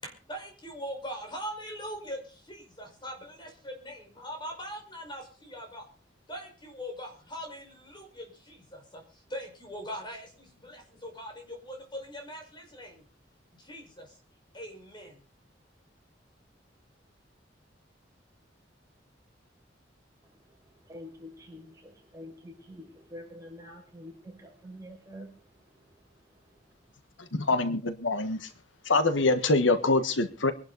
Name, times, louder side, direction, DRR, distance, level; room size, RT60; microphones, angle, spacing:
voice 1, 0.0-5.9 6.3-13.0 13.6-14.1 14.5-15.2, equal, 25° left, 3 dB, 5.2 m, -41 dB
voice 2, 20.9-25.3, left 1 dB, 15° right, 0 dB, 5.8 m, -46 dB
voice 3, 27.2-28.5 28.8-30.5, left 2 dB, 90° left, 11 dB, 1.4 m, -25 dB
24.0 x 11.5 x 4.1 m, 0.37 s
head